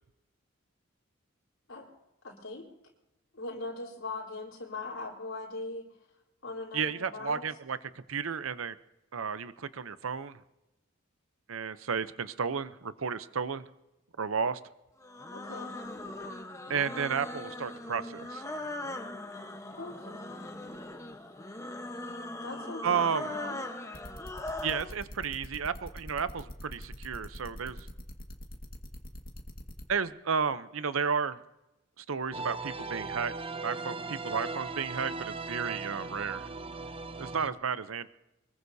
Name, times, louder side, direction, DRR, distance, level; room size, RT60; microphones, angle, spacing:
voice 1, 2.2-2.7 3.3-5.9 6.4-7.4 15.3-15.7 19.7-20.2 22.4-23.6, left 3 dB, 80° left, -3 dB, 3.7 m, -40 dB
voice 2, 6.7-8.8 9.1-10.4 11.5-13.6 14.2-14.6 16.7-18.4 22.8-23.4 24.6-27.9 29.9-31.4 32.0-33.3 33.6-36.5 37.2-38.1, right 6 dB, 80° right, 13 dB, 0.7 m, -32 dB
sound 1, 15.0-24.9, left 1 dB, 15° left, 1.1 m, -40 dB
sound 2, 23.9-29.8, equal, 45° left, 1.8 m, -43 dB
sound 3, 32.3-37.5, right 3 dB, 25° right, 0.6 m, -38 dB
24.0 x 21.5 x 2.8 m, 0.95 s
head